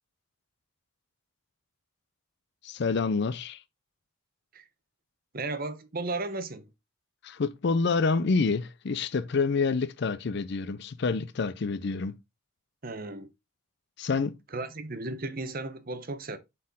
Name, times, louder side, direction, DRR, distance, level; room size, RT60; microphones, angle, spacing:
voice 1, 2.6-3.6 7.2-12.1 14.0-14.3, left 4 dB, 50° left, 0.4 m, -27 dB
voice 2, 5.3-6.7 12.8-13.3 14.5-16.4, right 2 dB, 40° right, 0.8 m, -35 dB
7.6 x 4.4 x 3.5 m
head